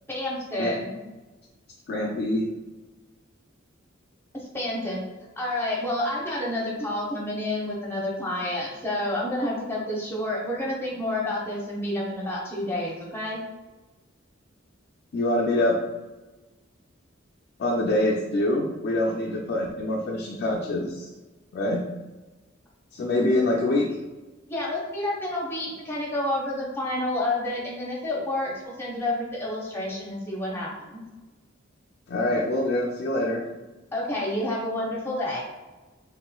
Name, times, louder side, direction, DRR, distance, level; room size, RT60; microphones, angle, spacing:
voice 1, 0.1-0.9 4.3-5.0 5.4-13.4 24.5-31.0 33.9-35.4, left 1 dB, 10° left, -4 dB, 0.7 m, -29 dB
voice 2, 1.9-2.5 15.1-15.8 17.6-21.1 21.5-21.8 22.9-23.9 32.1-33.4, left 1 dB, 55° left, -1 dB, 0.4 m, -25 dB
3.0 x 3.0 x 2.2 m, 1.2 s
head